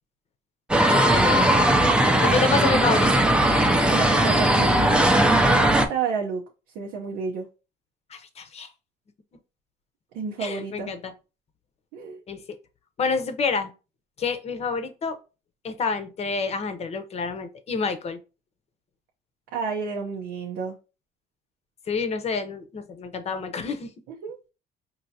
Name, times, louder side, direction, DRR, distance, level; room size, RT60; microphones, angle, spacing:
sound 1, 0.7-5.9, right 1 dB, 5° right, 0.5 m, -19 dB
voice 1, 0.9-1.4 2.2-3.3 8.1-8.7 10.4-11.1 12.3-12.4 13.0-13.7 14.2-15.2 15.6-18.2 21.9-23.9, left 4 dB, 40° left, 9 dB, 0.7 m, -28 dB
voice 2, 2.0-2.8 3.9-5.1 5.4-6.4 6.7-7.5 10.1-10.9 11.9-12.2 19.5-20.8 24.1-24.4, right 5 dB, 85° right, -1 dB, 0.7 m, -30 dB
4.6 x 2.8 x 2.7 m, 0.31 s
cardioid pair, 110°, 17 cm